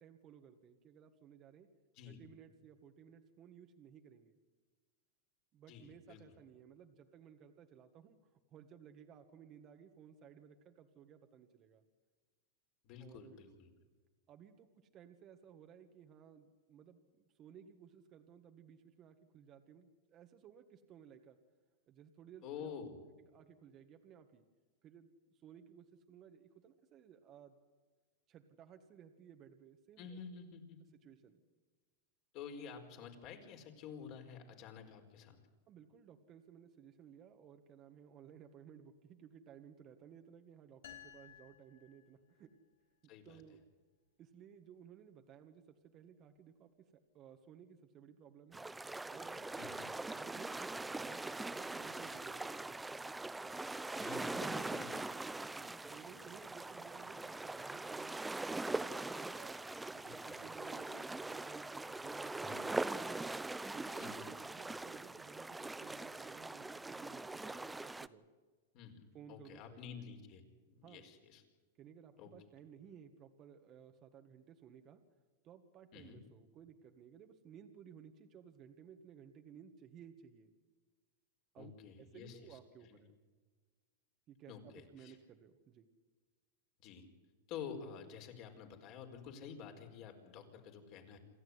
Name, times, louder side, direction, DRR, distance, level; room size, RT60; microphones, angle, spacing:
voice 1, 0.0-1.7 2.0-4.4 5.5-8.2 8.5-11.8 13.0-13.4 14.3-21.4 21.9-22.7 23.3-24.4 24.8-27.6 28.3-30.2 31.0-31.4 35.7-42.6 43.2-43.6 44.2-48.6 49.1-49.7 50.1-52.8 55.4-58.8 59.1-63.3 63.7-68.2 69.1-70.0 70.8-71.1 71.8-75.0 75.4-80.5 81.5-81.7 82.0-83.1 84.3-85.9, right 8 dB, 35° right, 6 dB, 1.7 m, -58 dB
voice 2, 5.7-6.4 12.8-13.7 22.4-23.0 30.0-30.8 32.3-35.4 43.1-43.6 49.6-49.9 53.9-55.1 60.0-60.4 62.5-62.7 64.0-64.3 68.7-71.4 72.2-72.3 75.9-76.2 81.6-82.6 82.9-83.0 84.5-85.2 86.8-87.1 87.5-91.2, left 7 dB, 50° left, 4 dB, 4.8 m, -50 dB
sound 1, 40.8-42.6, left 10 dB, 80° left, 3.3 m, -57 dB
sound 2, 48.5-68.1, right 2 dB, 10° right, 0.7 m, -42 dB
27.5 x 13.5 x 9.7 m, 1.4 s
hypercardioid pair, 125°, 0 cm